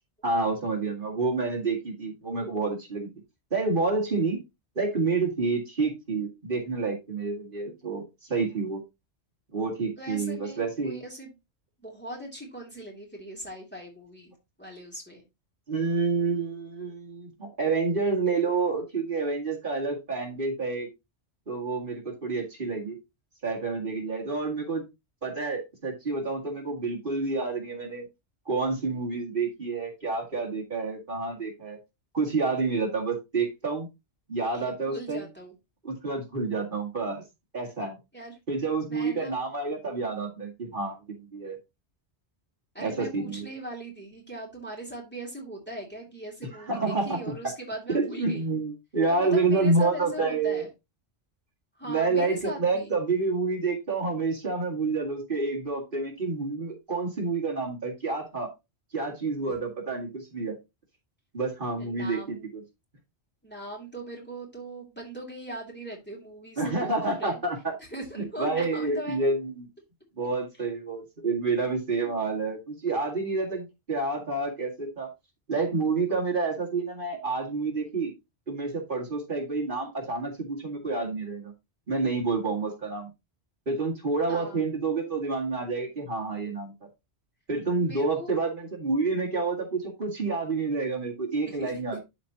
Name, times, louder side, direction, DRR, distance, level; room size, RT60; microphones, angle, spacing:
voice 1, 0.2-3.1 3.5-4.4 4.8-8.8 9.5-11.0 15.7-20.9 21.5-23.0 23.4-24.8 25.2-28.1 28.5-31.8 32.1-33.9 34.3-35.2 35.8-37.2 37.5-38.0 38.5-41.6 42.8-43.5 46.5-47.3 47.9-50.6 51.9-58.5 58.9-60.6 61.3-62.6 66.6-67.7 68.2-69.7 70.2-75.1 75.5-78.1 78.5-81.5 81.9-83.1 83.7-86.7 87.5-92.0, right 3 dB, 50° right, -2 dB, 2.2 m, -28 dB
voice 2, 10.0-11.3 11.8-15.2 34.5-35.5 38.1-38.4 38.8-39.3 42.7-48.5 49.1-50.7 51.7-52.9 61.8-62.5 63.4-67.4 67.9-69.2 72.0-72.2 84.3-84.6 87.8-88.3 91.4-91.8, right 1 dB, 10° left, -1 dB, 2.8 m, -40 dB
12.5 x 4.2 x 2.8 m, 0.23 s
omnidirectional pair, 1.1 m